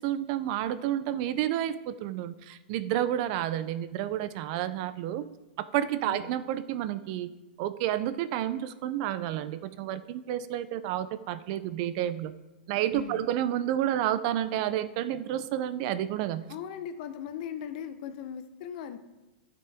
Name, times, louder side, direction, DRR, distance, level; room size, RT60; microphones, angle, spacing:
voice 1, 0.0-5.2 5.6-7.3 7.6-12.3 12.7-16.4, right 11 dB, 40° right, 14 dB, 0.4 m, -30 dB
voice 2, 16.5-19.0, left 8 dB, 45° left, 10 dB, 0.7 m, -39 dB
14.5 x 5.8 x 3.4 m, 1.1 s
supercardioid pair, 155°, 6 cm